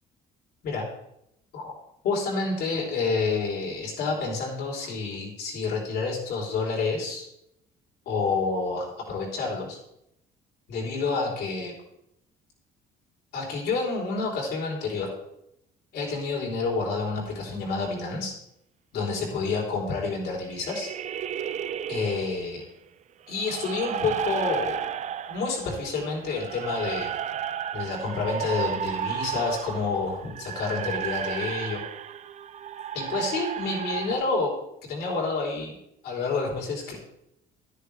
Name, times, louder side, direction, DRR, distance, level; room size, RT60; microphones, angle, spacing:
voice 1, 2.0-7.3 8.1-9.8 10.7-11.7 13.3-15.1 15.9-18.3 18.9-20.9 21.9-22.6 23.3-24.9 25.3-27.1 27.7-31.8 32.9-34.5 34.9-35.8 36.0-37.0, left 4 dB, 70° left, -1 dB, 4.1 m, -29 dB
sound 1, 20.5-22.6 23.3-34.1, right 9 dB, 45° right, 0.5 m, -33 dB
11.0 x 10.5 x 3.5 m, 0.79 s
cardioid pair, 110°, 17 cm